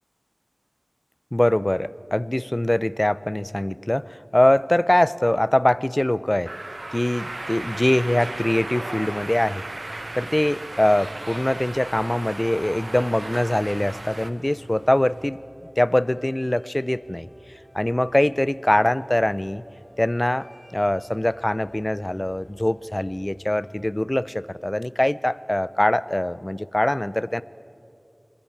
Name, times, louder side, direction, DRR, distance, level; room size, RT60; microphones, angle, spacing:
voice 1, 1.3-6.5 6.9-9.6 10.1-15.4 15.8-17.3 17.7-19.6 20.0-27.4, left 1 dB, 30° left, 17 dB, 0.5 m, -23 dB
sound 1, 6.5-14.3, right 2 dB, 70° right, 1.0 m, -35 dB
sound 2, 7.4-15.3, equal, 25° right, 3.1 m, -47 dB
sound 3, 13.3-23.9, equal, 45° right, 5.6 m, -54 dB
26.0 x 20.5 x 8.7 m, 2.6 s
wide cardioid pair, 45°, 0 cm